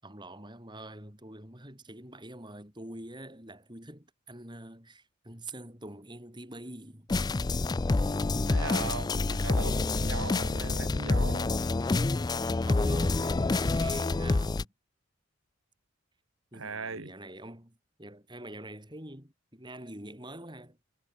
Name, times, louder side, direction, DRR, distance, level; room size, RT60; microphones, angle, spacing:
voice 1, 0.0-7.1 12.7-14.7 16.5-20.8, right 1 dB, 20° right, 7.0 m, -45 dB
sound 1, 7.1-14.6, left 3 dB, 20° left, 0.3 m, -27 dB
voice 2, 8.4-11.6 16.5-17.1, right 3 dB, 80° right, 2.5 m, -38 dB
head